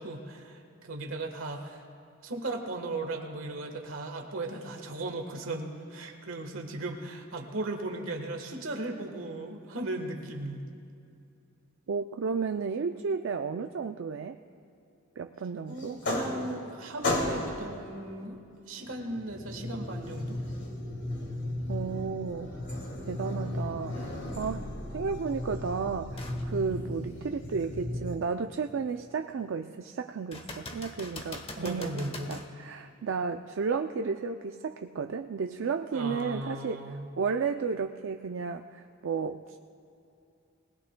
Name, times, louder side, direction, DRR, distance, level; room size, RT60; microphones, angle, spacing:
voice 1, 0.0-1.8 2.2-10.7 15.7-18.4 18.7-20.4 23.9-24.2 31.6-32.4 35.9-37.1, right 2 dB, 85° right, 3 dB, 1.3 m, -37 dB
voice 2, 11.9-14.4 15.2-16.0 21.7-22.5 23.1-24.7 24.9-32.0 32.3-39.6, right 5 dB, 65° right, 6 dB, 0.4 m, -33 dB
sound 1, 15.8-16.7 17.0-17.7 18.8-28.2, left 1 dB, 60° left, 2.3 m, -35 dB
sound 2, 26.2-26.4 27.0-27.1 30.3-32.5 36.2-36.3, left 2 dB, 30° left, 1.0 m, -42 dB
20.5 x 19.5 x 2.2 m, 2.6 s
head